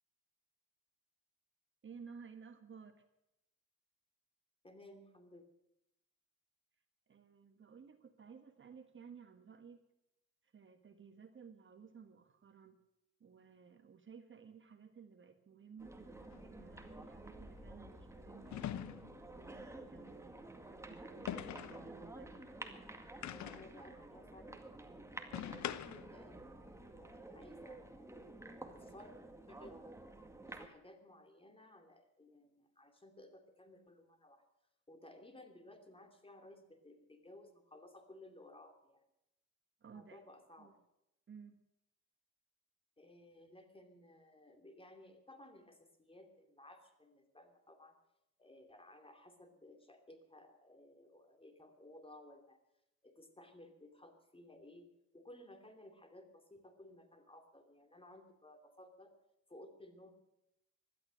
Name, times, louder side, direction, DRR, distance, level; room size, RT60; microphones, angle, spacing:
voice 1, 1.8-3.0 7.1-9.8 10.4-12.8 13.2-20.4 20.6-22.5 39.8-40.2 40.6-40.7 41.3-41.6, right 6 dB, 40° right, 8 dB, 1.5 m, -56 dB
voice 2, 4.6-5.4 23.5-24.6 26.1-28.2 28.7-29.1 29.5-29.7 30.5-34.4 34.9-39.0 39.9-40.7 43.0-47.9 48.4-52.6 53.0-54.8 55.1-59.1 59.5-60.1, left 1 dB, 20° left, 6 dB, 2.8 m, -58 dB
sound 1, 15.8-30.7, right 2 dB, 10° right, 2.0 m, -51 dB
sound 2, 16.3-16.5 18.5-19.2 21.3-21.9 23.2-23.8 25.3-26.2, left 11 dB, 65° left, 0.9 m, -43 dB
16.0 x 12.5 x 6.4 m, 0.84 s
cardioid pair, 90°, 30 cm